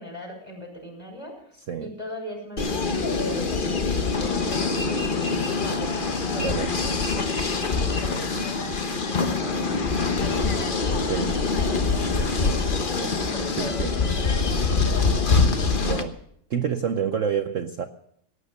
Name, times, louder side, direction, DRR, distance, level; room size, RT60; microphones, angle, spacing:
voice 1, 0.0-5.0 5.6-15.5, equal, 10° left, 0 dB, 5.7 m, -39 dB
sound 1, 2.6-16.0, left 4 dB, 35° left, 0.9 m, -24 dB
voice 2, 6.4-6.7 11.0-11.4 13.6-13.9 15.8-16.2 16.5-17.8, right 7 dB, 65° right, 9 dB, 0.7 m, -28 dB
17.5 x 9.6 x 6.7 m, 0.71 s
omnidirectional pair, 2.1 m